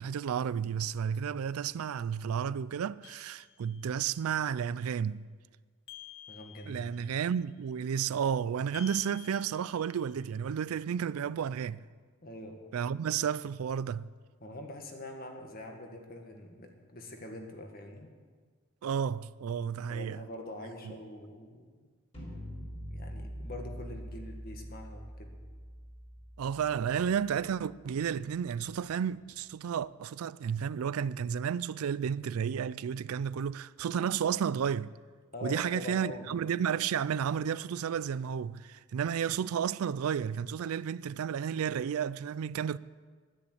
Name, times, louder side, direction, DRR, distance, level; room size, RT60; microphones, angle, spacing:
voice 1, 0.0-5.3 6.7-11.9 12.7-14.1 18.8-20.2 20.8-20.9 26.4-34.9 35.4-42.8, right 8 dB, 90° right, 0.4 m, -32 dB
sound 1, 3.0-4.0 5.9-7.1 8.7-10.2, left 10 dB, 60° left, 0.6 m, -51 dB
voice 2, 6.3-7.0 12.2-12.6 14.4-18.1 19.9-21.7 22.9-25.3 35.3-36.3, left 1 dB, 45° left, 1.7 m, -44 dB
sound 2, 22.1-28.1, equal, 30° left, 3.9 m, -44 dB
11.0 x 10.0 x 8.0 m
head